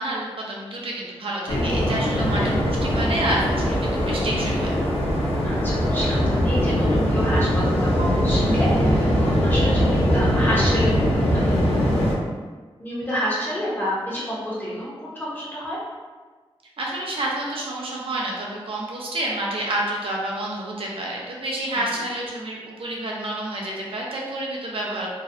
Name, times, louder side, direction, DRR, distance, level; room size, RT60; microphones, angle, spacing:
voice 1, 0.0-4.7 16.8-25.1, right 1 dB, 65° right, -3 dB, 0.5 m, -29 dB
Waves surf, 1.5-12.1, equal, 85° left, 0.5 m, -21 dB
voice 2, 5.4-11.6 12.8-15.8 21.7-21.8, equal, 20° left, -8 dB, 0.5 m, -29 dB
2.5 x 2.0 x 2.4 m, 1.4 s
wide cardioid pair, 130°, 10 cm